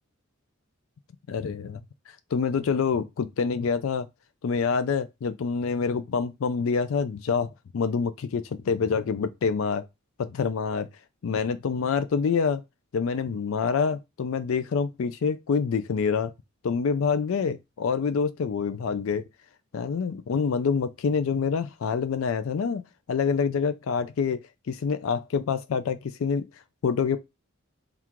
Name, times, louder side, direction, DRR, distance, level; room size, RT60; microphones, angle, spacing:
voice 1, 1.3-1.8 2.3-4.1 4.4-9.9 10.2-10.9 11.2-12.6 12.9-16.3 16.6-19.2 19.7-26.4 26.8-27.2, left 5 dB, 75° left, 0.4 m, -26 dB
3.6 x 2.4 x 4.4 m
head